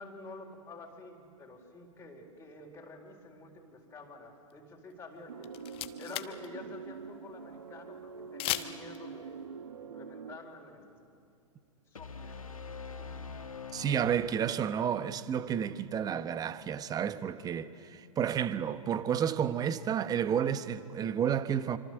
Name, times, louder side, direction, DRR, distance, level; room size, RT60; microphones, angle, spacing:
voice 1, 0.0-5.5 6.0-9.4 9.8-11.0 11.9-12.5 13.0-13.4, left 3 dB, 15° left, 4.3 m, -49 dB
sound 1, 5.2-5.3 5.4-6.5 6.7-6.8 8.4-9.0, left 15 dB, 30° left, 1.2 m, -35 dB
sound 2, 5.3-10.4, right 5 dB, 70° right, 1.6 m, -45 dB
sound 3, 12.0-14.9, left 5 dB, 85° left, 1.5 m, -44 dB
voice 2, 13.7-21.8, right 8 dB, 20° right, 1.1 m, -31 dB
26.5 x 25.5 x 8.0 m
figure-of-eight pair, 105°, 17 cm